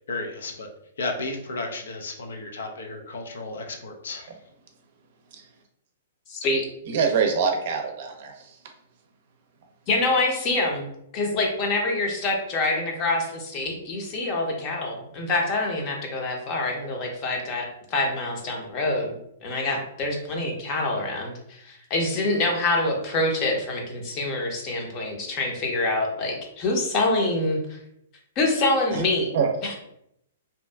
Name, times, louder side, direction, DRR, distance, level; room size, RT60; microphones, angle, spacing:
voice 1, 0.1-0.7 1.0-4.3, left 2 dB, 70° left, 3 dB, 0.5 m, -33 dB
voice 2, 6.3-6.7 9.9-27.8 28.4-29.3 29.6-29.7, left 2 dB, 35° left, 1 dB, 0.7 m, -26 dB
voice 3, 6.9-8.6 28.9-29.0 29.3-29.5, right 6 dB, 55° right, 3 dB, 0.5 m, -24 dB
2.7 x 2.3 x 2.2 m, 0.74 s
hypercardioid pair, 115°, 0 cm